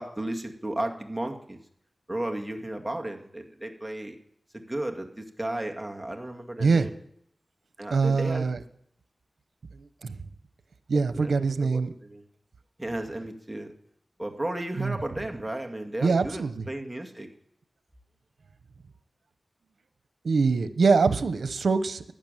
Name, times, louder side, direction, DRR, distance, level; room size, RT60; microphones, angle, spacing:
voice 1, 0.0-1.6 2.1-4.2 4.5-6.9 7.8-8.5 11.1-12.2 12.8-13.7 14.2-17.3, right 1 dB, 10° right, 2 dB, 2.1 m, -34 dB
voice 2, 7.9-8.6 9.7-10.2 10.9-11.9 14.8-15.0 16.0-16.6 20.2-22.1, right 4 dB, 90° right, 11 dB, 1.0 m, -24 dB
12.0 x 11.5 x 9.1 m, 0.72 s
wide cardioid pair, 80°, 0 cm